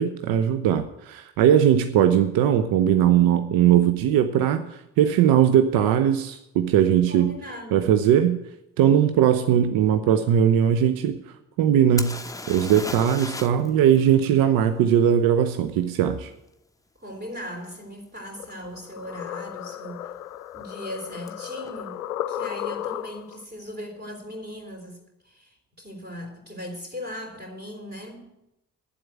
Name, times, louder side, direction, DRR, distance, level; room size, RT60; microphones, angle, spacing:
voice 1, 0.0-7.3 7.7-8.4 8.8-11.2 11.6-12.2 12.5-16.3, right 9 dB, 50° right, 0.7 m, -19 dB
voice 2, 7.1-8.0 17.0-20.2 20.5-25.0 25.2-28.3, equal, 20° right, 3.4 m, -38 dB
sound 1, 12.0-13.7 14.0-14.1 17.5-17.6 18.2-18.4 18.6-19.2 21.3-21.4 21.6-21.7, left 2 dB, 10° left, 0.8 m, -35 dB
sound 2, 18.4-23.4, left 12 dB, 80° left, 0.6 m, -34 dB
9.9 x 7.7 x 9.1 m
figure-of-eight pair, 45°, 43 cm